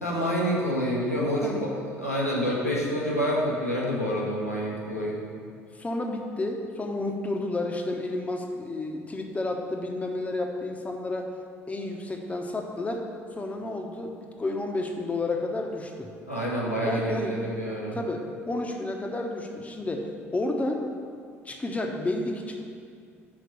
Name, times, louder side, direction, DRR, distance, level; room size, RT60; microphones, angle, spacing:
voice 1, 0.0-1.7 2.0-5.2 16.3-18.0, equal, 90° left, -5 dB, 1.3 m, -27 dB
voice 2, 5.8-11.3 11.7-13.1 13.4-16.1 16.8-17.3 17.9-20.8 21.4-22.6, left 2 dB, 20° left, 3 dB, 1.0 m, -31 dB
6.1 x 4.9 x 6.7 m, 2.3 s
figure-of-eight pair, 60°, 8 cm